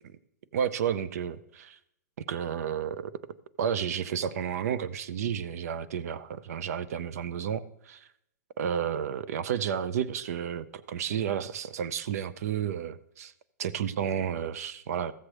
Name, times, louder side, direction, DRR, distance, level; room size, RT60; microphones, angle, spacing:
voice 1, 0.5-1.8 2.2-3.1 3.6-8.1 8.6-13.3 13.6-15.1, right 8 dB, 55° right, 17 dB, 0.5 m, -31 dB
14.5 x 7.4 x 3.3 m, 0.78 s
hypercardioid pair, 165°, 10 cm